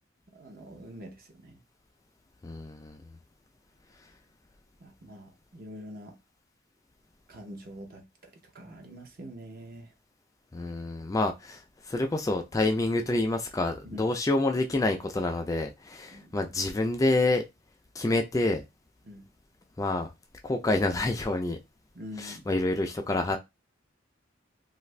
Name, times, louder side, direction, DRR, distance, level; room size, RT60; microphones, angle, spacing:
voice 1, 0.3-1.6 4.8-6.2 7.3-9.9 13.8-14.1 16.1-16.4 19.0-19.3 21.9-22.5, equal, 50° right, 0.7 m, -45 dB
voice 2, 2.4-3.0 10.5-17.4 17.9-18.6 19.8-20.1 20.4-21.6 22.2-23.4, left 2 dB, 15° left, 0.3 m, -28 dB
2.6 x 2.4 x 3.2 m
head